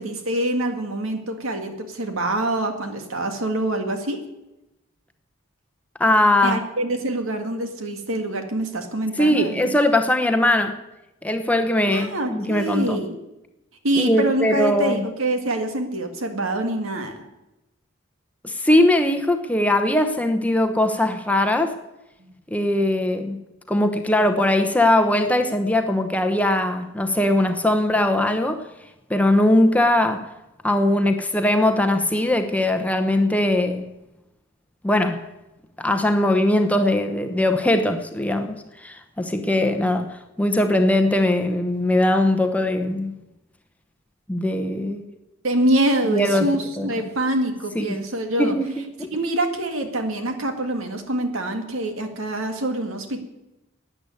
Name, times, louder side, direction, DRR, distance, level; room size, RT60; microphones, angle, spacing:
voice 1, 0.0-4.2 6.4-9.7 11.9-13.2 13.8-17.2 22.2-22.3 45.4-48.6 49.1-53.2, right 1 dB, 80° right, 2.1 m, -25 dB
voice 2, 6.0-6.6 9.2-10.8 11.2-13.0 14.0-15.0 18.4-21.8 22.5-23.4 23.7-28.7 29.1-30.3 30.6-33.9 34.8-35.3 35.8-43.1 44.3-45.1 46.1-46.9 47.7-48.0 48.4-49.1, left 1 dB, 5° left, 0.9 m, -20 dB
13.0 x 8.8 x 9.3 m
head